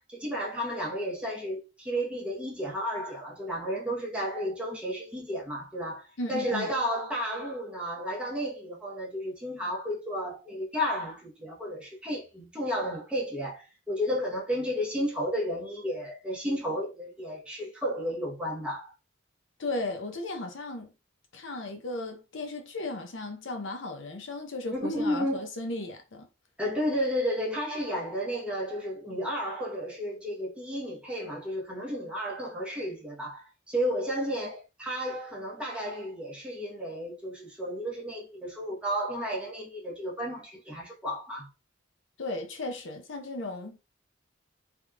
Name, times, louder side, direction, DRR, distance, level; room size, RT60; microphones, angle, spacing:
voice 1, 0.0-18.9 24.7-25.5 26.6-41.5, equal, 5° right, 1.1 m, -32 dB
voice 2, 6.2-6.7 19.6-20.9 21.3-26.3 42.2-43.8, left 2 dB, 70° left, 0.7 m, -35 dB
3.5 x 3.0 x 2.4 m
head